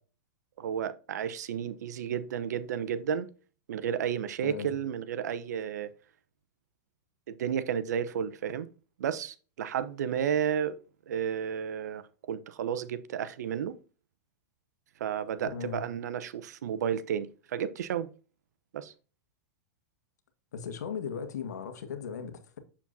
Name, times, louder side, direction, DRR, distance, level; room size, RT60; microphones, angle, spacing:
voice 1, 0.6-3.3 3.7-5.9 7.3-8.7 9.0-10.8 11.1-12.0 12.3-13.8 15.0-18.1 18.7-18.9, right 8 dB, 80° right, 0.8 m, -32 dB
voice 2, 15.4-15.8 20.5-22.6, left 7 dB, 85° left, 1.7 m, -37 dB
7.4 x 7.1 x 2.7 m
hypercardioid pair, 125°, 9 cm